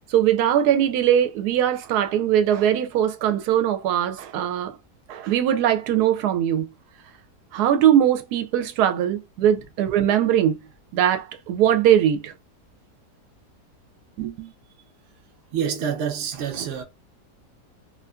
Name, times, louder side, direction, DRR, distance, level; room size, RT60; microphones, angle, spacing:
voice 1, 0.1-4.8 5.1-6.7 7.5-10.6 10.9-12.3 14.2-14.5, right 10 dB, 80° right, 1.1 m, -21 dB
voice 2, 15.5-16.8, right 7 dB, 60° right, 0.7 m, -27 dB
2.7 x 2.5 x 2.2 m
omnidirectional pair, 1.7 m